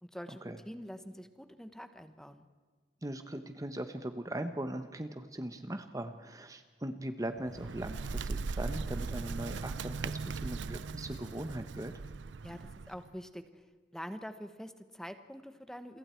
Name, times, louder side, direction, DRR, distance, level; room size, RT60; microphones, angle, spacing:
voice 1, 0.0-2.5 12.4-13.7 13.9-16.0, equal, 5° left, 9 dB, 1.3 m, -45 dB
voice 2, 3.0-11.9, right 1 dB, 20° right, 8 dB, 1.0 m, -40 dB
Bird, 7.3-13.1, right 4 dB, 85° right, 0.6 m, -39 dB
28.5 x 23.0 x 4.5 m, 1.5 s
head